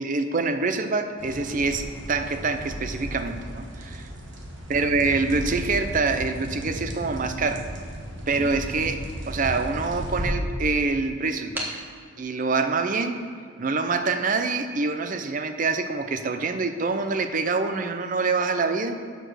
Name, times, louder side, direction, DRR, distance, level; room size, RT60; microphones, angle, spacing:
voice 1, 0.0-4.1 4.7-7.6 8.3-11.7 12.2-13.2 13.6-19.0, right 4 dB, 40° right, 8 dB, 0.5 m, -26 dB
sound 1, 1.2-10.3, equal, 60° right, 1.4 m, -35 dB
sound 2, 5.5-6.7 7.4-7.6 7.9-8.0 8.2-10.0 10.5-10.6 11.5-11.9, equal, 10° right, 1.2 m, -38 dB
6.8 x 6.7 x 6.2 m, 2.2 s
head